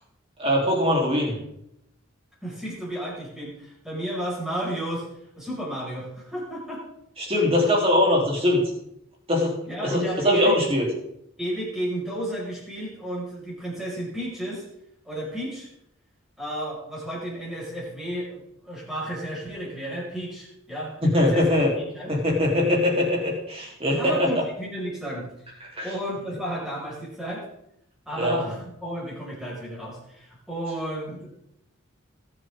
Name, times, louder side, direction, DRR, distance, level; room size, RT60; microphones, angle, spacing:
voice 1, 0.4-1.3 7.2-8.6 9.3-9.5 9.8-10.9 21.0-21.7 22.1-24.4 25.8-25.9 28.2-28.4, left 1 dB, 30° right, -2 dB, 3.3 m, -22 dB
voice 2, 2.4-5.1 5.4-6.8 9.7-10.6 11.4-14.7 15.0-15.7 16.4-21.5 21.9-22.1 24.0-25.3 25.8-27.5 28.1-31.3, right 1 dB, ahead, -6 dB, 5.2 m, -32 dB
20.5 x 7.7 x 3.7 m, 0.79 s
head